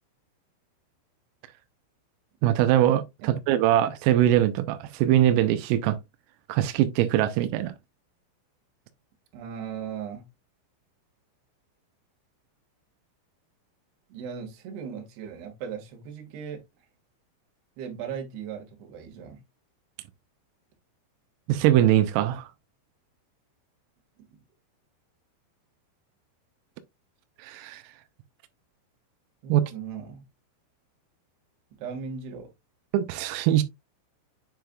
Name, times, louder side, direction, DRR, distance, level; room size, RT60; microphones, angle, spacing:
voice 1, 2.4-6.0 6.5-7.7 21.5-22.5 27.4-27.8 29.5-29.6 32.9-33.6, right 12 dB, 90° right, 3.3 m, -22 dB
voice 2, 9.3-10.2 14.1-16.6 17.8-19.4 24.2-24.4 29.4-30.2 31.8-32.5, right 7 dB, 60° right, 3.4 m, -38 dB
9.3 x 4.7 x 2.3 m
omnidirectional pair, 5.9 m